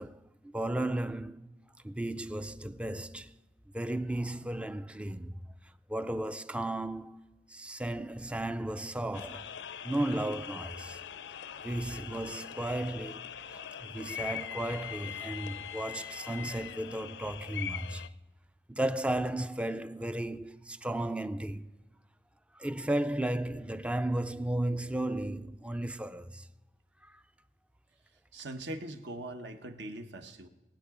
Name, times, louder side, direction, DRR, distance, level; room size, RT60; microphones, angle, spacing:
voice 1, 0.0-1.5 1.8-3.3 3.7-5.4 5.9-7.2 7.5-9.5 9.8-11.0 11.6-18.1 18.7-21.7 22.5-26.5 27.0-27.1, right 1 dB, 5° right, 0.3 m, -34 dB
sound 1, 9.1-18.1, left 9 dB, 75° left, 0.5 m, -42 dB
voice 2, 28.3-30.5, right 1 dB, 75° right, 1.2 m, -41 dB
23.0 x 8.7 x 3.7 m
head